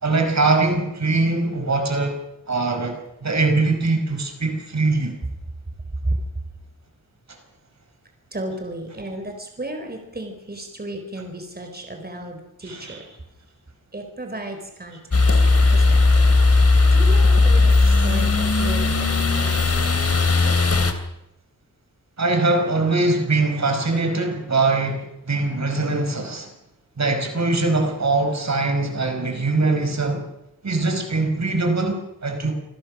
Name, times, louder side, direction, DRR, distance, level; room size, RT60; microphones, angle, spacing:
voice 1, 0.0-2.2 2.5-5.2 12.6-13.1 22.2-26.5 27.0-30.3 30.6-32.5, right 3 dB, 50° right, 5 dB, 4.9 m, -22 dB
voice 2, 8.3-12.4 12.6-13.0 13.9-16.3 16.9-18.3 18.6-20.5, right 1 dB, 25° right, 5 dB, 4.4 m, -35 dB
sound 1, 15.1-20.9, left 3 dB, 45° left, 3.1 m, -17 dB
28.0 x 20.5 x 6.3 m, 0.88 s
wide cardioid pair, 105°, 35 cm